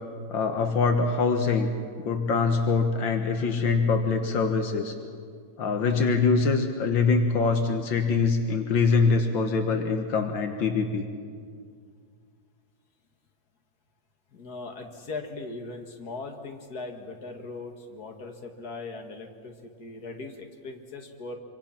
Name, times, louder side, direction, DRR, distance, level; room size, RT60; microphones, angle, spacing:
voice 1, 0.3-1.7 2.0-4.9 5.6-11.0, left 4 dB, 80° left, 5 dB, 2.0 m, -24 dB
voice 2, 14.3-21.4, left 3 dB, 55° left, 3 dB, 2.4 m, -39 dB
25.5 x 25.0 x 5.9 m, 2.1 s
omnidirectional pair, 2.0 m